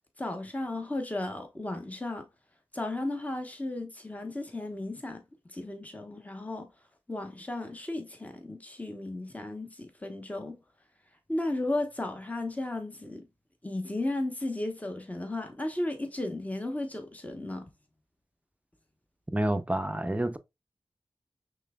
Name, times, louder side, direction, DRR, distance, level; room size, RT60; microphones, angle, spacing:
voice 1, 0.2-2.3 2.7-5.2 5.5-6.7 7.1-10.6 11.3-13.2 13.6-17.7, left 2 dB, 15° left, 1.0 m, -34 dB
voice 2, 19.3-20.4, right 1 dB, 15° right, 0.5 m, -28 dB
5.7 x 3.4 x 2.2 m
cardioid pair, 55°, 9 cm